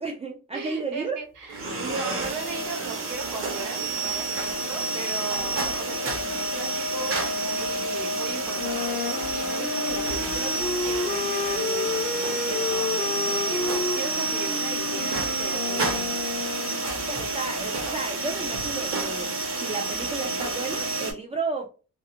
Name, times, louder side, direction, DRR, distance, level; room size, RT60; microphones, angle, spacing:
voice 1, 0.0-1.1 13.0-13.6 16.9-19.3 19.6-21.7, right 3 dB, 20° right, -1 dB, 0.3 m, -33 dB
voice 2, 0.5-12.2 12.5-16.3, right 4 dB, 90° right, 3 dB, 0.5 m, -38 dB
sound 1, 1.5-21.1, right 2 dB, 50° right, 0.8 m, -29 dB
Wind instrument woodwind instrument, 8.5-17.0, left 5 dB, 35° left, 0.5 m, -31 dB
2.5 x 2.0 x 2.7 m, 0.35 s
wide cardioid pair, 130°, 29 cm